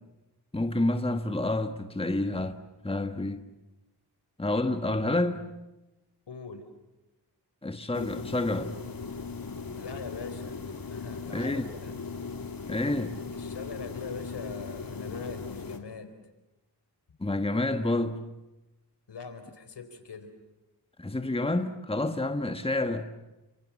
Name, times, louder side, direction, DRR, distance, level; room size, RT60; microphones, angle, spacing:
voice 1, 0.5-2.6 2.8-3.4 4.4-5.5 7.6-8.8 11.3-11.7 12.7-13.2 17.2-18.3 21.0-23.1, left 2 dB, 15° left, 1.6 m, -29 dB
voice 2, 6.3-6.6 9.8-10.6 10.9-12.0 13.3-16.1 19.1-20.3, left 5 dB, 80° left, 4.2 m, -42 dB
sound 1, 7.9-15.8, left 4 dB, 55° left, 3.2 m, -38 dB
30.0 x 26.5 x 7.4 m
wide cardioid pair, 85°, 41 cm